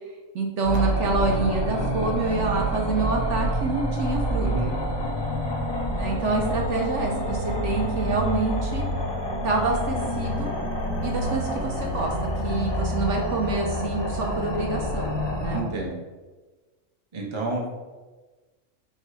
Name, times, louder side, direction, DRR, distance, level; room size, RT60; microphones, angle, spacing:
voice 1, 0.3-4.8 5.9-8.9 9.4-10.5 11.0-12.1 12.4-15.6, right 3 dB, 65° right, 0 dB, 0.9 m, -27 dB
sound 1, 0.6-15.6, equal, 35° left, 0.4 m, -27 dB
voice 2, 4.4-4.7 15.5-16.0 17.1-17.7, right 2 dB, 30° right, -2 dB, 0.6 m, -30 dB
4.6 x 2.3 x 4.6 m, 1.3 s
omnidirectional pair, 1.4 m